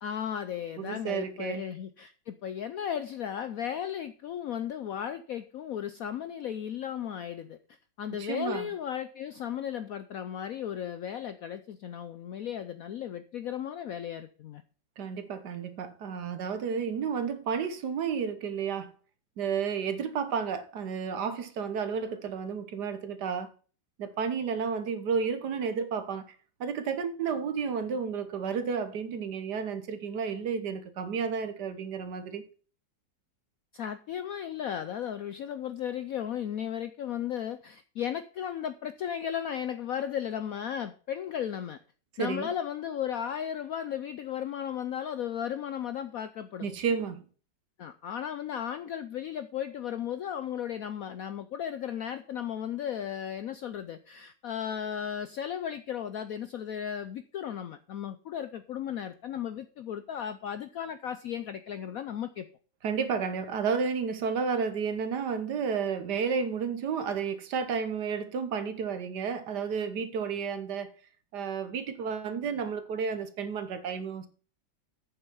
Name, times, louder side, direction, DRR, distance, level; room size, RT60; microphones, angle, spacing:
voice 1, 0.0-14.6 33.7-41.8 42.2-46.7 47.8-62.5, left 9 dB, 75° left, 0.8 m, -35 dB
voice 2, 0.8-1.6 8.1-8.7 15.0-18.9 19.4-23.5 24.0-26.3 26.6-32.4 42.2-42.5 46.6-47.2 62.8-70.9 71.3-74.3, right 6 dB, 65° right, 1.5 m, -32 dB
8.7 x 7.0 x 5.5 m
omnidirectional pair, 2.1 m